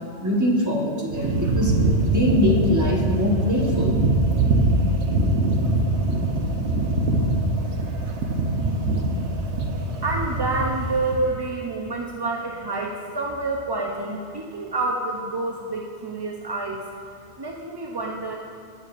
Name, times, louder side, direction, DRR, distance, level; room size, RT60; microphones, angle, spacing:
voice 1, 0.2-1.7 2.0-4.0, left 1 dB, 15° right, -3 dB, 1.1 m, -22 dB
sound 1, 1.1-11.3, right 2 dB, 75° right, 1.1 m, -23 dB
voice 2, 10.0-16.8 17.4-18.4, right 2 dB, 35° right, 0 dB, 0.4 m, -28 dB
16.5 x 6.7 x 2.4 m, 2.3 s
omnidirectional pair, 1.2 m